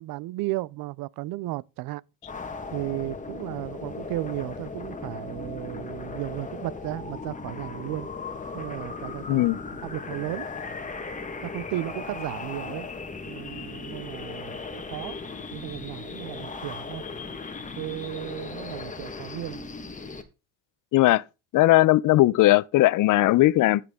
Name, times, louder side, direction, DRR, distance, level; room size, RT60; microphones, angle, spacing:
voice 1, 0.0-2.0 2.7-8.1 8.5-9.5 9.8-10.5 11.4-12.9 13.3-15.2 15.5-17.0 17.8-19.6, right 17 dB, 65° right, 0.5 m, -34 dB
sound 1, 2.2-20.2, left 4 dB, 20° left, 1.4 m, -37 dB
voice 2, 9.3-9.6 20.9-21.2 21.5-23.8, left 17 dB, 55° left, 0.5 m, -18 dB
15.0 x 5.9 x 3.6 m
cardioid pair, 110°, 38 cm